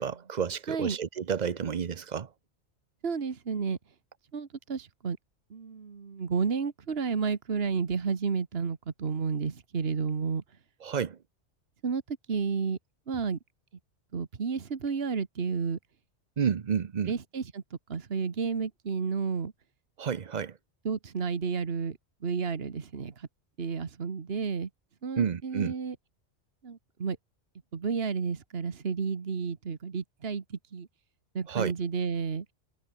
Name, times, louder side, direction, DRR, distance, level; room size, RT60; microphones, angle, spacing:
voice 1, 0.0-2.3 10.8-11.2 16.4-17.1 20.0-20.6 25.2-25.7 31.5-31.7, right 7 dB, 45° right, 0.8 m, -30 dB
voice 2, 0.7-1.0 3.0-3.8 4.3-5.2 5.5-10.4 11.8-12.8 13.1-13.4 14.1-15.8 17.1-17.6 17.9-19.5 20.8-22.0 22.2-23.3 23.6-24.7 25.0-25.9 26.6-27.2 27.7-30.9 31.3-32.4, right 5 dB, 60° right, 1.6 m, -31 dB
omnidirectional pair, 1.2 m